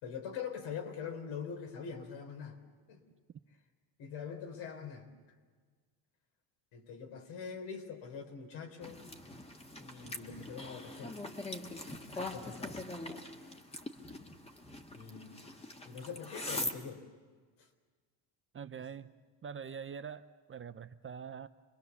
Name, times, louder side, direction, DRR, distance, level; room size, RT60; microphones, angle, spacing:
voice 1, 0.0-2.6 2.9-3.0 4.0-5.1 6.7-9.0 9.8-11.2 12.1-12.8 14.9-15.6 15.8-17.0 17.6-17.7 18.8-18.9, left 6 dB, 70° left, 4 dB, 3.6 m, -43 dB
sound 1, 8.8-16.8, left 2 dB, 15° left, 1.7 m, -42 dB
voice 2, 18.5-19.1 19.4-21.5, right 7 dB, 25° right, 11 dB, 0.6 m, -44 dB
27.5 x 21.0 x 7.0 m, 1.5 s
cardioid pair, 105°, 47 cm